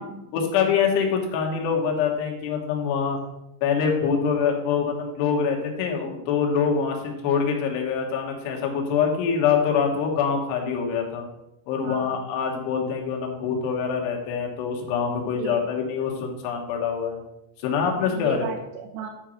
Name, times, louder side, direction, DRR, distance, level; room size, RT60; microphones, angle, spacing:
voice 1, 0.3-3.2 3.6-11.2 11.7-17.2 17.6-18.5, left 6 dB, 70° left, 1 dB, 3.3 m, -25 dB
voice 2, 11.8-12.2 15.2-15.7 18.1-19.1, right 6 dB, 80° right, 2 dB, 2.5 m, -35 dB
8.9 x 4.5 x 6.3 m, 0.87 s
omnidirectional pair, 5.4 m